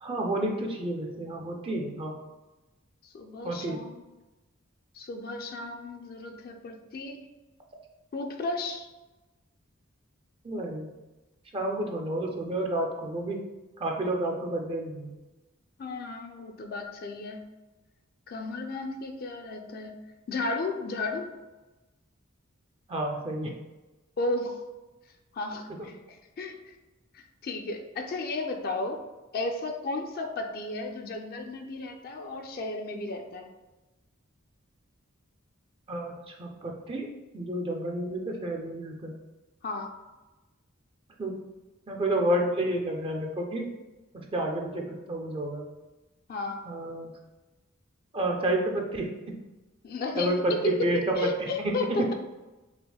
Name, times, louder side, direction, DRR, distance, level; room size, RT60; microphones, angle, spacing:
voice 1, 0.0-2.1 3.4-3.8 10.4-10.9 11.5-13.4 13.8-15.2 22.9-23.5 25.8-25.9 35.9-37.1 37.3-39.2 41.2-41.4 41.9-43.7 44.1-45.7 46.6-47.1 48.1-49.3 50.2-51.3 51.6-52.1, right 1 dB, 25° right, 1 dB, 0.4 m, -30 dB
voice 2, 3.0-4.0 4.9-7.2 8.1-8.9 15.8-17.4 18.3-20.0 20.3-21.3 24.2-24.6 25.3-26.7 27.1-29.0 29.3-33.5 39.6-39.9 46.3-46.6 49.8-52.1, left 2 dB, 45° left, 3 dB, 0.4 m, -33 dB
5.6 x 2.1 x 2.3 m, 1.1 s
head